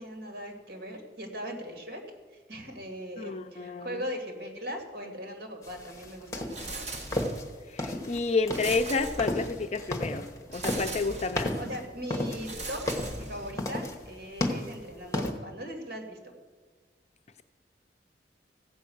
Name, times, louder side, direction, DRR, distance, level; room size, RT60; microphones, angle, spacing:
voice 1, 0.0-2.0 2.3-7.0 11.5-12.8 13.2-16.3, equal, 70° right, 2 dB, 2.2 m, -39 dB
voice 2, 3.2-4.0 7.7-11.5, left 4 dB, 40° left, 8 dB, 0.5 m, -30 dB
sound 1, 5.6-15.3, left 1 dB, 20° left, 1.2 m, -33 dB
sound 2, 6.5-7.6 8.5-9.7 10.5-11.5 12.4-13.7, right 2 dB, 40° right, 1.3 m, -39 dB
14.5 x 5.5 x 7.8 m, 1.4 s
head